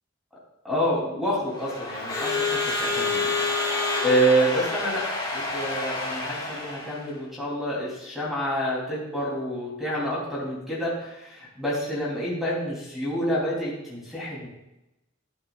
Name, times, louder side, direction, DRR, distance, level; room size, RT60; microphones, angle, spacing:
voice 1, 0.6-5.0 5.3-14.5, right 1 dB, ahead, -6 dB, 3.0 m, -28 dB
Crowd / Alarm, 1.5-7.1, left 3 dB, 20° left, 2.7 m, -28 dB
11.5 x 10.0 x 2.4 m, 0.92 s
head